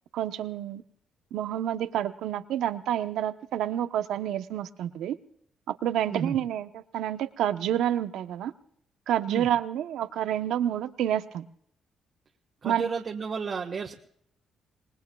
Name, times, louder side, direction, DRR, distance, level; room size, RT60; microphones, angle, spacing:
voice 1, 0.1-0.8 1.3-5.2 5.7-6.7 6.9-8.5 9.1-11.4 12.6-12.9, right 11 dB, 80° right, 10 dB, 0.8 m, -28 dB
voice 2, 12.6-13.9, right 5 dB, 50° right, 1 dB, 1.4 m, -32 dB
27.0 x 19.5 x 2.3 m, 0.67 s
cardioid pair, 90°, 0 cm